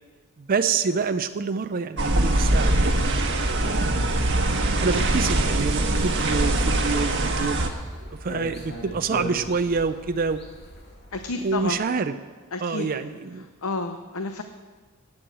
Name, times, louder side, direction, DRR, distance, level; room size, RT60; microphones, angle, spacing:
voice 1, 0.4-4.0 4.3-4.4 4.8-7.6 8.2-10.4 11.4-12.1 12.6-13.5, right 5 dB, 40° right, 8 dB, 0.5 m, -27 dB
sound 1, 2.0-7.7, right 1 dB, 60° right, 1.4 m, -22 dB
sound 2, 4.5-11.7, equal, 50° left, 2.6 m, -40 dB
voice 2, 11.1-11.8 12.5-12.9 13.6-14.4, left 3 dB, 85° left, 7 dB, 0.8 m, -30 dB
12.0 x 8.6 x 7.7 m, 1.5 s
head